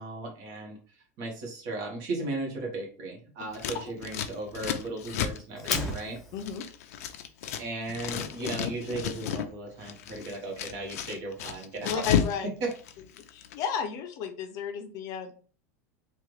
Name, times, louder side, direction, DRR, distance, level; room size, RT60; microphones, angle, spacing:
voice 1, 0.0-6.2 7.6-12.0 12.4-12.7, right 2 dB, 50° right, 0 dB, 1.4 m, -36 dB
Scissors, 3.5-7.6 7.9-9.5 9.8-12.4 12.6-13.5, left 9 dB, 85° left, 0.5 m, -32 dB
Fire, 5.6-6.6, left 1 dB, 5° left, 0.6 m, -34 dB
voice 2, 6.3-6.7 11.8-12.5 13.3-15.3, left 7 dB, 45° left, 7 dB, 0.6 m, -33 dB
3.5 x 2.4 x 3.2 m, 0.40 s
supercardioid pair, 145°, 8 cm